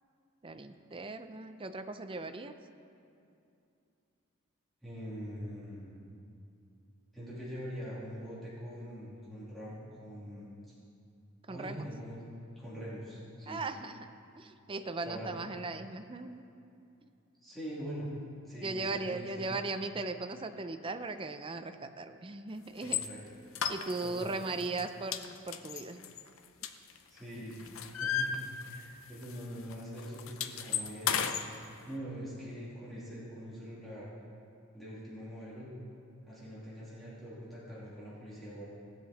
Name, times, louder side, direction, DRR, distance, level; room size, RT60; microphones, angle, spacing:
voice 1, 0.4-2.5 11.5-11.9 13.5-14.1 14.4-16.4 17.0-17.1 18.6-23.0 23.7-25.2 25.5-26.1 27.4-27.5, right 3 dB, 25° right, 8 dB, 0.5 m, -38 dB
voice 2, 4.8-5.9 7.1-10.6 11.5-12.2 12.6-13.6 15.0-15.3 17.4-18.1 18.5-19.5 22.8-23.2 24.0-24.4 27.1-27.6 28.0-28.4 28.6-31.3 31.9-34.1 34.7-35.7 36.2-38.6, equal, ahead, -10 dB, 2.8 m, -43 dB
sound 1, 22.8-23.1 23.5-24.3 24.6-24.8 25.1-27.2 27.5-29.0 29.2-29.4 29.7-31.5, left 8 dB, 70° left, 0.7 m, -34 dB
18.0 x 7.6 x 4.2 m, 2.6 s
head